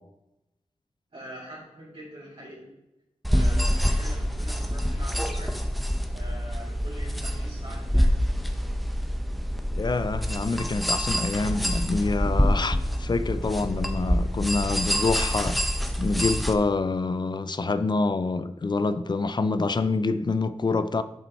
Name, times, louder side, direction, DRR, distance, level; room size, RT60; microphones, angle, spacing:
voice 1, 1.1-2.7 3.3-5.6 6.1-8.2, equal, 55° right, 2.8 m, -44 dB
sound 1, 3.2-16.5, equal, ahead, 0.6 m, -26 dB
voice 2, 9.8-15.6 16.0-21.0, left 3 dB, 40° left, 0.4 m, -26 dB
7.5 x 5.4 x 4.3 m
wide cardioid pair, 100°, 12 cm